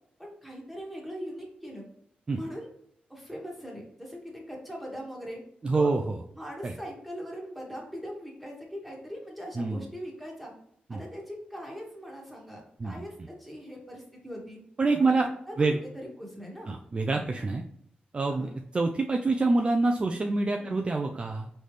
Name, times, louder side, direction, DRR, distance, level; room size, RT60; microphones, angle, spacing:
voice 1, 0.2-1.8 2.3-2.7 3.1-5.4 5.7-5.9 6.3-10.5 10.9-14.6 15.0-15.1 15.5-15.6 15.9-16.7 17.1-17.3 18.3-18.5 20.6-20.8, equal, ahead, -2 dB, 1.5 m, -41 dB
voice 2, 5.6-6.2 6.6-6.7 9.6-9.8 10.9-11.0 12.8-13.0 14.8-15.3 15.6-15.8 16.7-17.6 18.1-21.5, right 3 dB, 30° right, 3 dB, 0.4 m, -26 dB
4.0 x 3.3 x 3.2 m, 0.71 s
cardioid pair, 85°, 3 cm